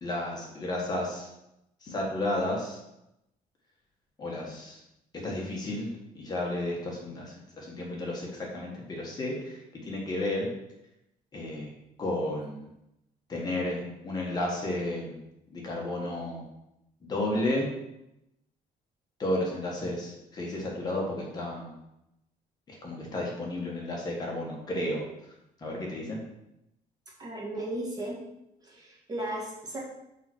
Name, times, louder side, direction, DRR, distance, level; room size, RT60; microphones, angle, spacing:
voice 1, 0.0-1.3 1.8-2.8 4.2-4.8 5.2-10.5 11.3-11.7 12.0-12.7 13.3-15.2 15.5-16.4 17.0-17.7 19.2-21.8 22.7-25.0 25.6-26.2, left 1 dB, 25° left, -2 dB, 1.6 m, -32 dB
voice 2, 27.2-28.2 28.6-29.8, right 1 dB, 25° right, -3 dB, 1.7 m, -35 dB
5.7 x 5.1 x 6.1 m, 0.87 s
cardioid pair, 170°, 15 cm